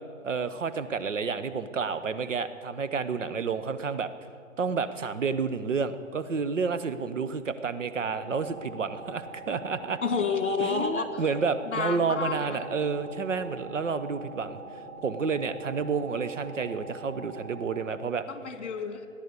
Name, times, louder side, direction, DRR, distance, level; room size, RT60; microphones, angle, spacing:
voice 1, 0.2-4.1 4.6-10.0 10.6-14.6 15.0-18.2, right 5 dB, 65° right, 12 dB, 1.0 m, -30 dB
sound 1, 8.0-17.8, right 2 dB, 15° left, 1.9 m, -44 dB
voice 2, 10.0-11.2 11.7-12.6 18.3-19.1, left 5 dB, 60° left, 8 dB, 1.8 m, -30 dB
16.5 x 10.5 x 8.3 m, 2.5 s
hypercardioid pair, 170°, 41 cm